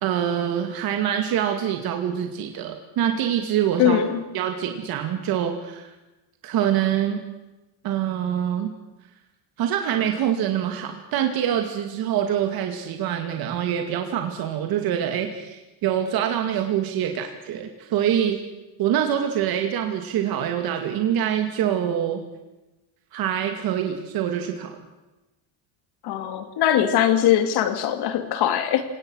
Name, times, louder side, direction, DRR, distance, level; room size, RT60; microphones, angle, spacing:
voice 1, 0.0-4.0 4.3-5.9 6.4-7.2 7.8-8.7 9.6-18.4 18.8-22.2 23.1-24.8, right 9 dB, 55° right, 4 dB, 2.4 m, -25 dB
voice 2, 3.8-4.2 26.0-28.8, left 10 dB, 60° left, 9 dB, 2.6 m, -21 dB
29.0 x 18.5 x 6.4 m, 1.0 s
cardioid pair, 155°, 44 cm